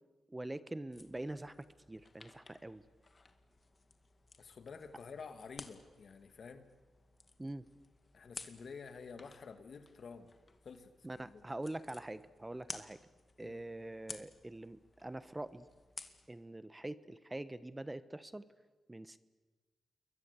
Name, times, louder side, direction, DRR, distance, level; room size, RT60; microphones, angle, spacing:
voice 1, 0.3-2.8 7.4-7.6 11.0-13.0 13.4-15.7 16.3-18.5 18.9-19.2, right 1 dB, 15° right, 14 dB, 1.2 m, -44 dB
sound 1, 0.9-16.3, left 3 dB, 40° left, 2.2 m, -55 dB
voice 2, 4.4-6.7 8.1-10.3 10.6-10.9 11.3-11.4 13.4-13.6, left 5 dB, 60° left, 9 dB, 2.2 m, -50 dB
28.5 x 22.5 x 8.4 m, 1.3 s
cardioid pair, 60°, 0 cm